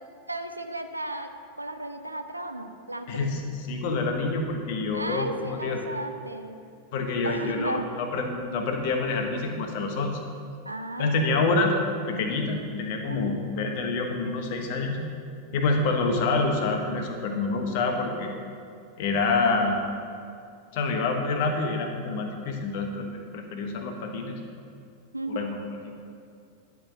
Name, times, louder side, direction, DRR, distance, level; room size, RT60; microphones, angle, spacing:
voice 1, 0.3-3.3 4.9-6.6 7.2-7.9 10.6-11.5 13.1-13.4 25.1-25.5, right 1 dB, 85° right, 6 dB, 0.6 m, -34 dB
voice 2, 3.1-3.4 3.7-5.8 6.9-10.2 11.0-11.7 12.1-15.0 15.5-18.3 19.0-19.8 20.7-24.3 25.3-25.6, left 3 dB, 50° left, 3 dB, 1.1 m, -27 dB
10.5 x 4.7 x 6.1 m, 2.4 s
figure-of-eight pair, 90°, 0 cm